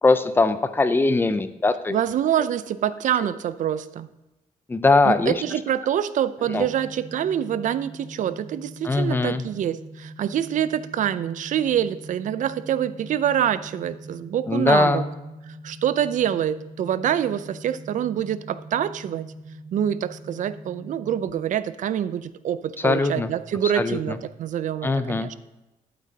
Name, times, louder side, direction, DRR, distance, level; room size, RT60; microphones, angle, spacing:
voice 1, 0.0-2.0 4.7-5.4 6.5-6.7 8.8-9.4 14.5-15.1 22.8-23.3 23.8-24.2 24.8-25.3, left 3 dB, 15° left, 11 dB, 0.4 m, -21 dB
voice 2, 1.9-4.1 5.0-15.0 15.5-19.3 19.7-25.3, right 10 dB, 55° right, 14 dB, 0.4 m, -26 dB
sound 1, 6.4-21.4, right 1 dB, 40° right, 3.7 m, -43 dB
11.5 x 8.6 x 2.8 m, 1.0 s
wide cardioid pair, 175°, 15 cm